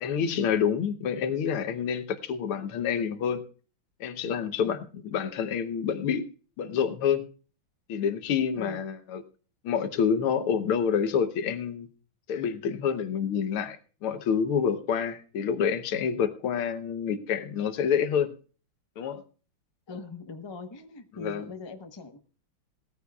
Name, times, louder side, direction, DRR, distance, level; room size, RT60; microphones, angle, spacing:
voice 1, 0.0-3.4 4.0-6.3 6.6-7.3 7.9-9.2 9.6-11.9 12.3-18.4 19.0-19.2 21.2-21.5, left 7 dB, 80° left, 10 dB, 1.8 m, -28 dB
voice 2, 19.9-22.2, left 4 dB, 25° left, 6 dB, 0.5 m, -41 dB
19.0 x 14.0 x 2.3 m, 0.38 s
omnidirectional pair, 2.4 m